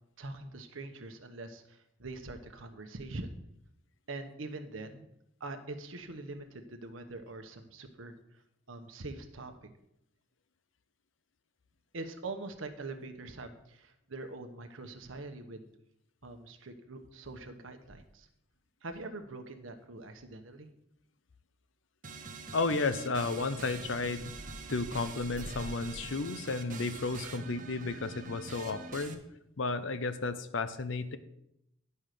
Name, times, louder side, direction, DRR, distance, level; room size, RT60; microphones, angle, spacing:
voice 1, 0.2-3.4 4.1-5.1 5.4-8.4 8.7-9.5 11.9-15.6 16.2-18.3 18.8-20.7, right 2 dB, 85° right, 7 dB, 1.0 m, -43 dB
sound 1, 22.0-29.1, right 4 dB, 45° right, 0.9 m, -45 dB
voice 2, 22.5-24.3 24.7-29.2 29.6-31.2, left 3 dB, 70° left, 12 dB, 0.7 m, -33 dB
sound 2, 23.7-26.4, equal, 5° right, 1.6 m, -48 dB
9.2 x 5.5 x 6.6 m, 0.81 s
head